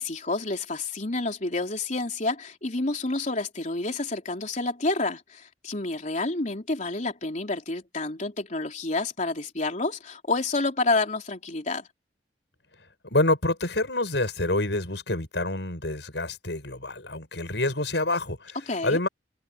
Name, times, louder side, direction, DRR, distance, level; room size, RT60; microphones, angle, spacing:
voice 1, 0.0-11.9 18.7-19.0, left 2 dB, 45° left, 3.5 m, -29 dB
voice 2, 13.0-18.6 18.8-19.1, left 2 dB, 80° left, 6.8 m, -27 dB
head